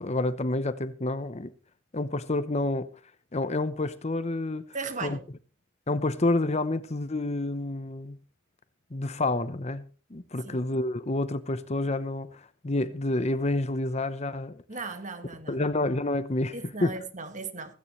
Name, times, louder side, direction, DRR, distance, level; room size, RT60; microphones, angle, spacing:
voice 1, 0.0-1.5 1.9-2.9 3.3-4.7 5.0-5.2 5.9-8.2 8.9-14.6 15.5-17.0, left 2 dB, 35° left, 0.9 m, -29 dB
voice 2, 4.7-5.3 10.4-10.6 14.7-15.6 16.5-17.7, right 4 dB, 40° right, 1.8 m, -37 dB
16.0 x 16.0 x 3.2 m
head